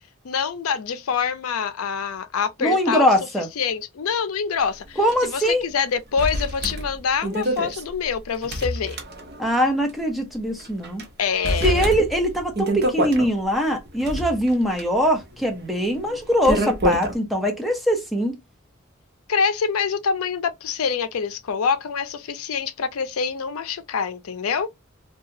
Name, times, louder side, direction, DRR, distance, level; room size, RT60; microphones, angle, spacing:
voice 1, 0.2-3.1 3.6-9.0 11.2-11.8 19.3-24.7, left 6 dB, 85° left, 0.5 m, -25 dB
voice 2, 2.6-3.5 5.0-5.6 9.4-11.0 11.6-18.4, equal, ahead, 0.7 m, -22 dB
sound 1, 5.1-5.2 5.4-5.5 6.2-9.6 9.9-10.0 10.6-11.1 11.4-13.3 13.9-17.2, equal, 50° right, 0.8 m, -27 dB
2.8 x 2.3 x 2.6 m
head